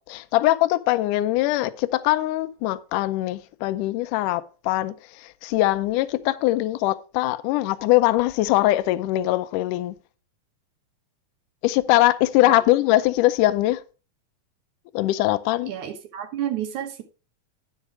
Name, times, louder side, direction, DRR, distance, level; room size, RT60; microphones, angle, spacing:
voice 1, 0.1-10.0 11.6-13.8 14.9-15.7, left 16 dB, 80° left, 2.1 m, -22 dB
voice 2, 15.7-17.0, right 10 dB, 70° right, 2.5 m, -30 dB
12.0 x 5.2 x 4.6 m
omnidirectional pair, 3.8 m